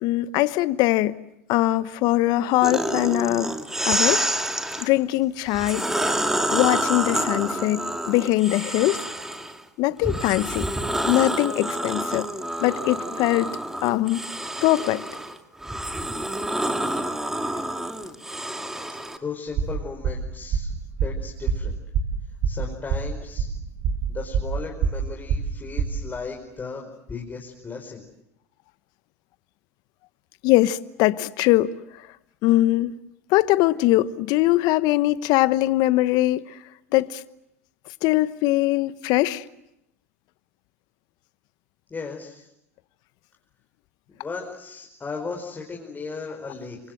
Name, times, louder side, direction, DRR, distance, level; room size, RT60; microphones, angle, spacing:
voice 1, 0.0-1.2 1.5-3.5 3.8-4.2 4.8-5.9 6.5-9.0 9.8-10.7 11.1-12.3 12.6-13.5 13.8-14.3 14.6-15.0 30.4-31.8 32.4-32.9 33.3-36.6 36.9-37.2 38.0-39.4, left 17 dB, 55° left, 1.0 m, -21 dB
sound 1, 2.6-4.9 5.5-9.6 10.0-19.2, right 1 dB, 5° right, 2.4 m, -28 dB
voice 2, 17.5-18.2 19.2-20.7 21.0-21.8 22.4-23.5 24.1-28.0 41.9-42.5 44.1-46.8, left 4 dB, 20° left, 4.9 m, -36 dB
sound 2, 19.5-26.1, right 6 dB, 50° right, 7.1 m, -26 dB
28.5 x 24.5 x 7.8 m
hypercardioid pair, 90°, 8 cm